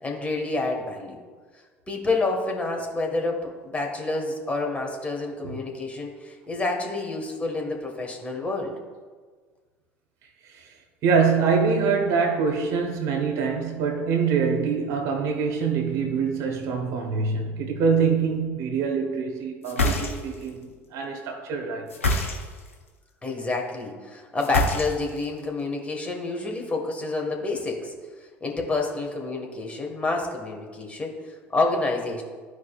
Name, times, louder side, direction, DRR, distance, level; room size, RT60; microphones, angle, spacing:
voice 1, 0.0-1.2 1.9-8.8 23.2-27.9 28.4-32.2, left 3 dB, 20° left, 1.6 m, -28 dB
voice 2, 11.0-20.6 20.9-22.0, right 5 dB, 55° right, 1.2 m, -24 dB
sound 1, 19.6-20.5 21.9-22.7 24.4-25.2, left 2 dB, 90° left, 0.8 m, -25 dB
12.5 x 4.7 x 2.4 m
figure-of-eight pair, 65°, 7 cm